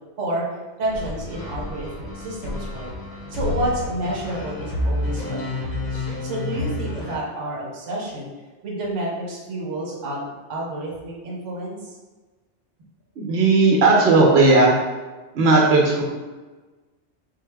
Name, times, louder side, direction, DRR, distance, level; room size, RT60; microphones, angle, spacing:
voice 1, 0.8-2.9 3.3-8.3 8.6-11.9, right 1 dB, 85° right, -3 dB, 1.1 m, -30 dB
sound 1, 0.9-7.2, left 2 dB, 40° left, 0.8 m, -29 dB
voice 2, 13.2-14.7 15.3-16.0, right 3 dB, 65° right, -2 dB, 1.0 m, -16 dB
4.0 x 2.0 x 3.4 m, 1.3 s
omnidirectional pair, 1.2 m